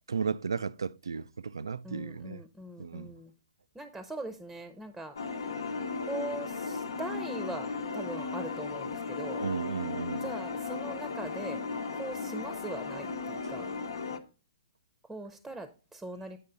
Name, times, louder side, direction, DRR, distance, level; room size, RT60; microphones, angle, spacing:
voice 1, 0.1-2.4 2.8-3.1 9.4-10.3, right 5 dB, 90° right, 0.3 m, -34 dB
voice 2, 1.8-3.3 3.7-5.2 6.0-9.4 10.2-11.6 11.9-13.7 15.1-16.4, right 2 dB, 5° right, 0.7 m, -41 dB
sound 1, 5.2-14.2, left 4 dB, 80° left, 0.9 m, -36 dB
8.5 x 5.3 x 3.9 m
hypercardioid pair, 130°, 2 cm